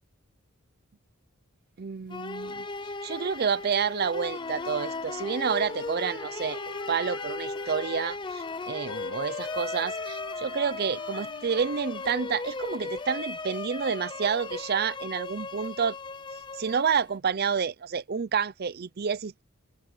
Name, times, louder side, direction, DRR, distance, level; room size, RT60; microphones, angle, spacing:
voice 1, 1.8-2.7 3.0-16.0 16.5-19.4, right 6 dB, 45° right, 0.5 m, -29 dB
sound 1, 2.1-17.2, left 3 dB, 20° left, 0.6 m, -37 dB
sound 2, 2.5-13.6, equal, 5° left, 5.7 m, -62 dB
Wind instrument woodwind instrument, 4.2-8.2 8.8-12.4, left 5 dB, 65° left, 0.5 m, -44 dB
head